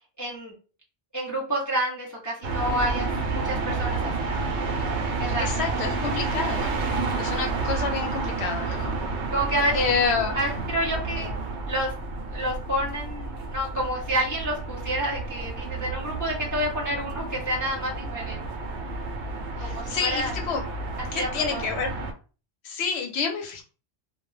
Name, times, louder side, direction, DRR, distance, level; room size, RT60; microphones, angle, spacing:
voice 1, 0.2-0.5 1.1-4.8 5.2-5.6 9.0-9.8 10.3-11.3 11.7-11.9 12.3-18.4 19.6-20.3 21.1-21.6, equal, 25° left, -4 dB, 0.5 m, -29 dB
sound 1, 2.4-22.1, right 3 dB, 80° right, 0.9 m, -30 dB
voice 2, 5.4-6.8 7.2-8.9 9.7-10.4 11.2-11.3 19.6-20.6 21.1-21.9 22.6-23.6, left 5 dB, 75° left, 3 dB, 0.9 m, -28 dB
2.2 x 2.1 x 3.1 m, 0.35 s
omnidirectional pair, 1.1 m